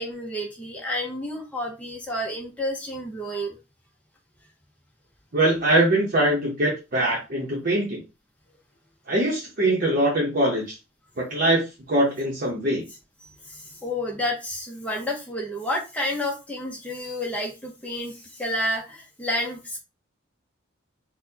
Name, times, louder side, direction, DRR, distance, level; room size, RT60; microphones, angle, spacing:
voice 1, 0.0-3.6 13.2-19.8, left 1 dB, 5° left, -1 dB, 0.7 m, -30 dB
voice 2, 5.3-8.0 9.1-10.8 11.2-11.6 11.9-12.8, right 1 dB, 45° right, -4 dB, 0.9 m, -22 dB
4.0 x 2.2 x 2.8 m, 0.28 s
head